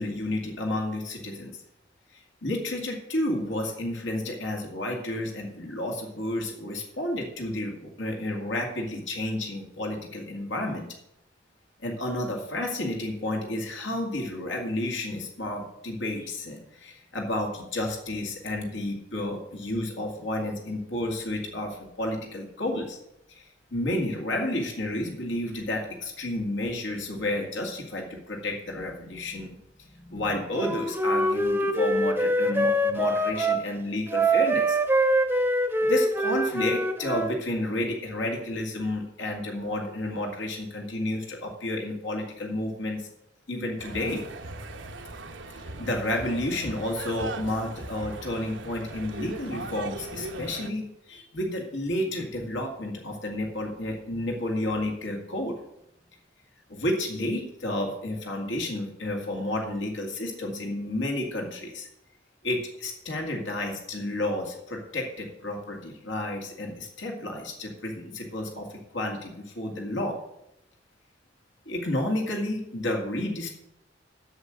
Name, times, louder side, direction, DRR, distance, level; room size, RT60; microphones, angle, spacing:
voice 1, 0.0-1.6 2.1-10.9 11.8-23.0 23.3-23.4 23.7-34.8 35.8-43.1 43.5-44.2 45.5-55.6 56.7-61.9 62.4-70.2 71.7-73.6, left 1 dB, 80° left, 1 dB, 2.2 m, -31 dB
Wind instrument woodwind instrument, 30.5-33.6 34.1-37.3, right 1 dB, 10° right, 0.8 m, -24 dB
sound 1, 43.8-50.7, right 2 dB, 80° right, 1.0 m, -39 dB
8.0 x 6.6 x 8.1 m, 0.81 s
head